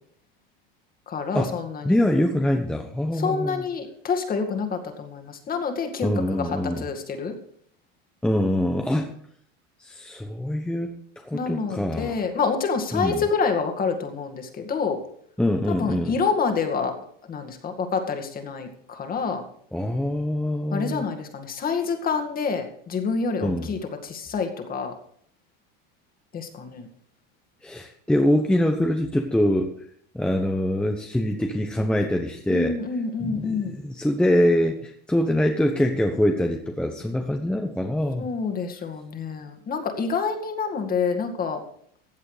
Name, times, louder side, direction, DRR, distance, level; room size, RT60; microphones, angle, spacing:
voice 1, 1.1-1.9 3.1-7.3 11.3-15.0 15.7-16.9 17.3-19.4 20.7-24.9 26.3-26.9 32.5-33.8 38.2-41.6, left 5 dB, 30° left, 6 dB, 2.2 m, -27 dB
voice 2, 1.8-3.6 6.0-6.8 8.2-9.1 9.8-11.0 11.2-12.1 12.9-13.2 15.4-16.1 19.7-21.1 23.4-23.7 27.6-29.7 30.1-32.7 33.2-38.3, left 1 dB, 5° left, 3 dB, 0.9 m, -24 dB
15.5 x 8.7 x 5.0 m, 0.63 s
supercardioid pair, 135°, 30 cm